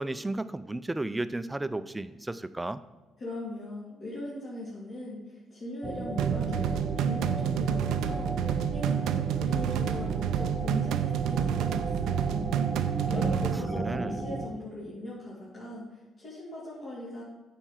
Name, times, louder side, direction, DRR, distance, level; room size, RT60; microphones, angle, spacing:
voice 1, 0.0-2.8 13.1-13.4 13.7-14.2, right 2 dB, 15° right, 13 dB, 0.4 m, -33 dB
voice 2, 3.2-17.2, left 1 dB, 55° left, -9 dB, 2.7 m, -40 dB
sound 1, 5.8-14.5, right 3 dB, 35° right, 1.0 m, -34 dB
sound 2, 6.2-13.6, right 9 dB, 85° right, 0.4 m, -29 dB
9.0 x 4.5 x 5.8 m, 1.1 s
cardioid pair, 90°, 0 cm